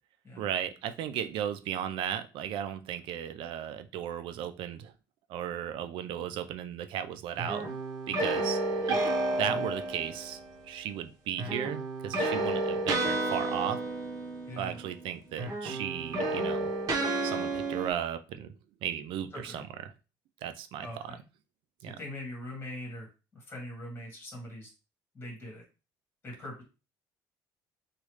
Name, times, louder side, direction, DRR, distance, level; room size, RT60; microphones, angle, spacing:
voice 1, 0.4-4.9 5.3-7.7 8.1-9.0 9.4-10.4 10.7-13.8 14.6-16.7 17.2-18.5 18.8-19.7 20.4-21.2 21.8-22.0, right 10 dB, 70° right, 10 dB, 0.4 m, -35 dB
sound 1, 7.4-10.5 11.4-15.1 15.3-17.9, right 2 dB, 40° right, 1.0 m, -31 dB
voice 2, 14.5-14.8 19.3-19.6 20.8-21.2 21.8-23.1 23.3-24.7 25.1-25.6 26.2-26.6, left 1 dB, 25° left, -2 dB, 1.6 m, -41 dB
3.0 x 2.4 x 3.1 m, 0.31 s
cardioid pair, 130°, 9 cm